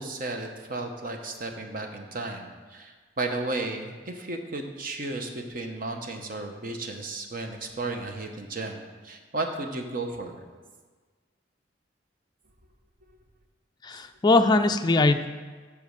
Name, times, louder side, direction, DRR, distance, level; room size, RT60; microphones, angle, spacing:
voice 1, 0.0-10.4 13.9-14.0, right 2 dB, 50° right, 4 dB, 0.9 m, -34 dB
voice 2, 13.8-15.3, left 3 dB, 20° left, 7 dB, 0.4 m, -21 dB
8.5 x 4.9 x 6.5 m, 1.5 s
head